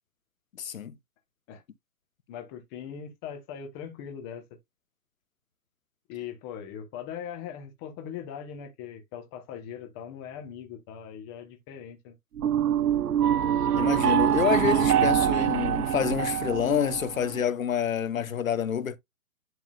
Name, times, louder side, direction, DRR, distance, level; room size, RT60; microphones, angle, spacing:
voice 1, 0.6-0.9 13.8-19.0, left 8 dB, 60° left, 1.2 m, -27 dB
voice 2, 2.3-4.4 6.1-12.1 14.2-14.9, left 8 dB, 15° left, 1.1 m, -40 dB
sound 1, 12.4-17.4, right 10 dB, 80° right, 0.7 m, -24 dB
11.0 x 3.7 x 2.4 m
hypercardioid pair, 155°, 46 cm